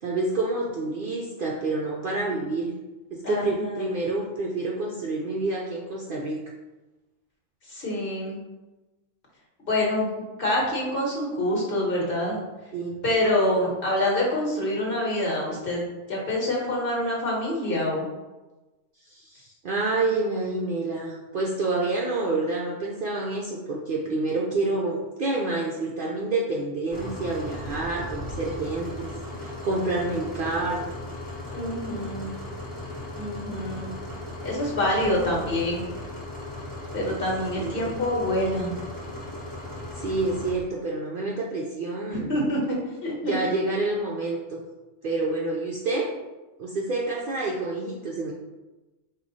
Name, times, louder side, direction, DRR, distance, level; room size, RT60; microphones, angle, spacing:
voice 1, 0.0-2.7 3.1-6.4 12.7-13.0 19.0-30.9 37.6-38.0 40.0-42.4 43.2-44.6 45.0-46.2 46.6-48.3, right 2 dB, 60° right, -2 dB, 0.6 m, -28 dB
voice 2, 3.2-3.8 7.7-8.4 9.7-12.4 13.0-15.8 16.1-18.0 31.5-32.3 33.2-33.9 34.4-35.8 36.9-38.7 42.1-43.4, left 1 dB, 50° left, -3 dB, 1.3 m, -26 dB
sound 1, 26.9-40.5, left 1 dB, 10° left, 1.1 m, -37 dB
4.7 x 2.4 x 3.9 m, 1.1 s
omnidirectional pair, 1.3 m